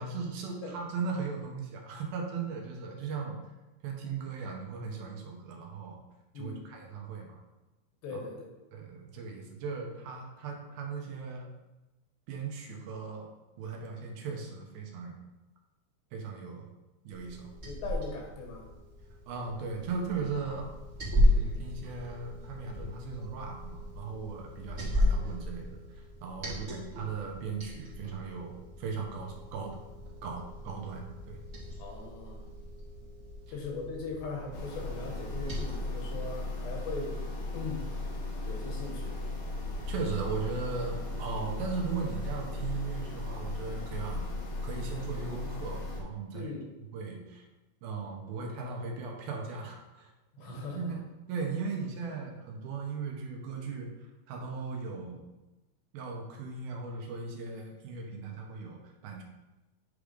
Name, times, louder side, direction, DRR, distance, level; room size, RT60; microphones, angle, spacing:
voice 1, 0.0-3.4 3.8-6.0 6.4-7.4 8.1-8.2 8.7-11.5 12.3-13.3 13.6-15.2 16.1-16.7 17.0-17.5 19.3-20.7 21.2-29.8 30.2-31.4 39.9-44.2 44.6-46.5 46.9-47.5 47.8-50.1 50.4-51.0 51.3-53.9 54.3-55.3 55.9-59.2, right 5 dB, 75° right, 1 dB, 2.7 m, -38 dB
voice 2, 6.3-6.7 8.0-8.5 17.6-18.7 26.6-26.8 31.8-32.5 33.5-37.2 37.5-37.9 38.4-39.2 46.3-46.7 50.3-51.0, left 3 dB, 85° left, 0 dB, 3.6 m, -40 dB
Liquid, 17.1-35.7, left 1 dB, 30° right, 1.3 m, -34 dB
sound 1, 34.5-46.0, left 2 dB, 70° left, 3.0 m, -36 dB
9.0 x 3.4 x 5.1 m, 1.1 s
omnidirectional pair, 4.6 m